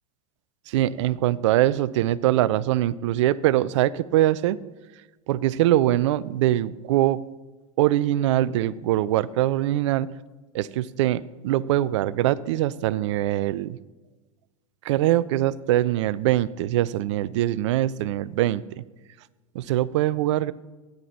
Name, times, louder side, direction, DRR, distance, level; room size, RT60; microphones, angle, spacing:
voice 1, 0.7-4.6 5.3-7.3 7.8-10.2 10.5-13.8 14.8-18.8 19.5-20.5, right 14 dB, 55° right, 20 dB, 0.5 m, -23 dB
13.5 x 9.6 x 4.3 m, 1.2 s
figure-of-eight pair, 90°, 19 cm